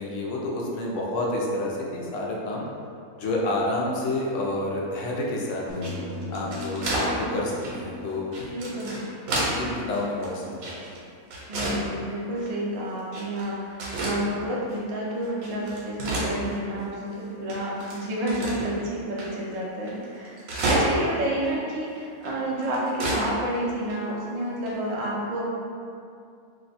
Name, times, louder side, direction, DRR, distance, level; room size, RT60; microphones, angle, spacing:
voice 1, 0.0-2.6 3.2-5.8 6.3-8.5 9.5-10.8, left 1 dB, 70° left, -3 dB, 0.8 m, -29 dB
sound 1, 5.7-9.8, left 1 dB, 85° left, 1.1 m, -38 dB
sound 2, 5.7-7.1 7.6-7.7 8.3-9.6 9.9-11.0 11.3-11.8 12.4-12.5 13.1-13.5 13.8-14.2 14.7-14.8 15.2-16.8 17.1-17.2 17.5-18.7 19.2-19.3 19.5-19.6 19.8-21.1 21.4-21.5 22.2-23.2 23.5-23.6 23.9-24.0 24.7-24.9, right 1 dB, 75° right, 1.1 m, -30 dB
voice 2, 8.5-9.1 11.5-20.4 20.6-25.5, right 1 dB, 90° right, -5 dB, 0.3 m, -30 dB
2.6 x 2.2 x 4.0 m, 2.4 s
omnidirectional pair, 1.5 m